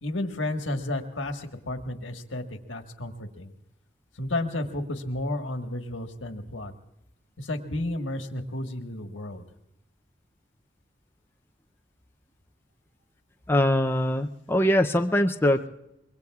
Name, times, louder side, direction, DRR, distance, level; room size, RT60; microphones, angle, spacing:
voice 1, 0.0-3.5 4.2-6.7 7.4-9.4, left 1 dB, 85° left, 5 dB, 1.4 m, -32 dB
voice 2, 13.5-15.7, left 1 dB, 10° left, 4 dB, 0.5 m, -22 dB
25.5 x 22.5 x 2.4 m, 0.85 s
head